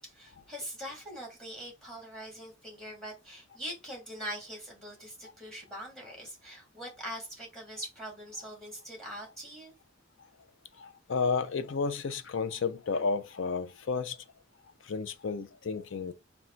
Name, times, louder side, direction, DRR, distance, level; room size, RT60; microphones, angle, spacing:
voice 1, 0.0-9.7, equal, 5° left, 1.7 m, -42 dB
voice 2, 10.8-14.2 14.9-16.1, left 4 dB, 65° left, 0.5 m, -32 dB
3.8 x 2.3 x 4.3 m
head